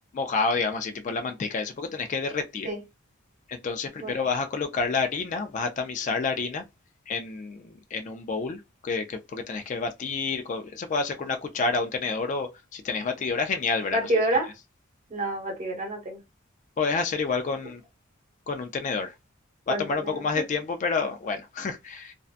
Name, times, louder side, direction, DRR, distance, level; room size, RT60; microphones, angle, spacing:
voice 1, 0.1-2.7 3.5-6.6 7.1-14.1 16.8-17.8 18.5-19.1 19.7-22.1, left 4 dB, 40° left, 0.3 m, -29 dB
voice 2, 13.9-14.5 15.1-16.2 19.7-20.4, right 2 dB, 35° right, 1.2 m, -28 dB
2.6 x 2.2 x 2.4 m
head